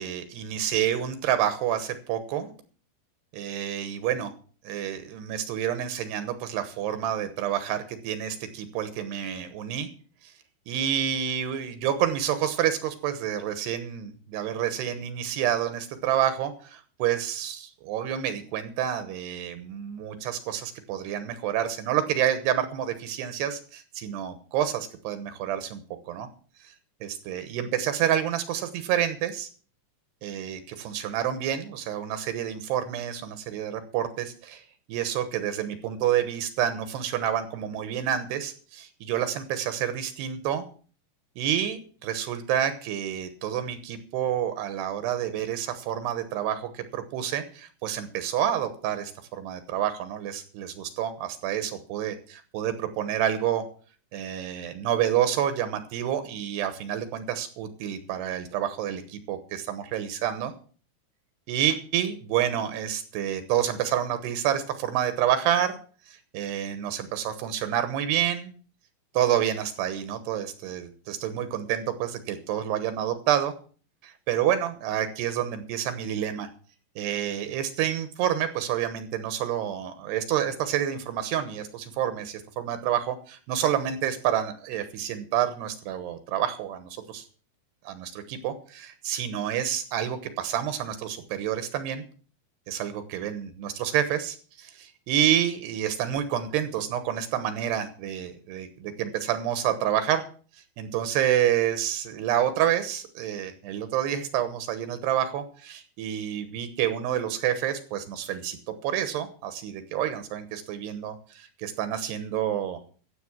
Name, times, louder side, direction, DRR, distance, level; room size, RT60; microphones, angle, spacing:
voice 1, 0.0-2.5 3.3-4.3 4.6-9.9 10.2-10.3 10.7-26.3 27.0-29.5 30.2-34.6 34.9-40.7 41.4-53.6 54.1-60.5 61.5-65.8 66.1-68.5 69.1-73.5 74.0-76.5 77.0-87.2 87.8-92.0 92.7-100.2 100.8-108.6 108.8-112.8, right 10 dB, 80° right, 10 dB, 3.1 m, -28 dB
14.5 x 7.8 x 6.0 m, 0.42 s
omnidirectional pair, 5.0 m